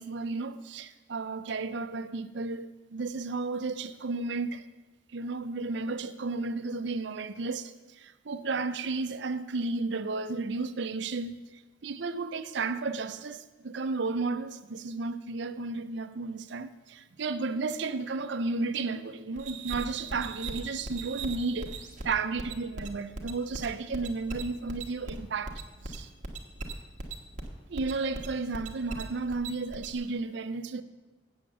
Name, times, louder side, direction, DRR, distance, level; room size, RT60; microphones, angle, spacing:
voice 1, 0.0-4.6 5.1-21.7 22.0-26.1 27.7-30.8, right 3 dB, 60° right, 0.5 m, -33 dB
sound 1, 19.4-29.9, right 3 dB, 40° right, 1.2 m, -39 dB
7.7 x 7.4 x 7.6 m
head